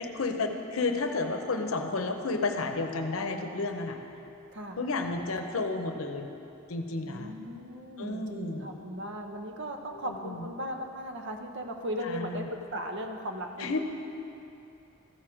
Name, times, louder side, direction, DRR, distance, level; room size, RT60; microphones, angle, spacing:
voice 1, 0.0-4.1 4.8-6.3 6.7-7.4 8.0-8.8 9.9-10.5 12.0-12.5 13.6-13.8, left 3 dB, 75° left, 5 dB, 0.8 m, -32 dB
voice 2, 7.0-12.5 12.7-13.8, equal, 60° right, 4 dB, 0.8 m, -37 dB
14.0 x 6.1 x 4.9 m, 2.9 s
head